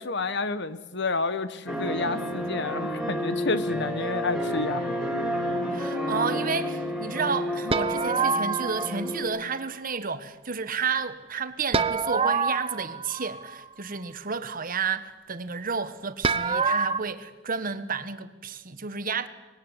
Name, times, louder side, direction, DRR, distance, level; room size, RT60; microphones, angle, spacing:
voice 1, 0.0-4.8, left 3 dB, 65° left, 1.4 m, -30 dB
sound 1, 1.7-9.2, equal, ahead, 5.6 m, -30 dB
voice 2, 5.7-19.3, right 5 dB, 45° right, 1.3 m, -31 dB
sound 2, 7.7-9.0 11.7-13.6 16.2-17.0, right 4 dB, 30° right, 0.9 m, -26 dB
24.0 x 20.5 x 9.9 m
head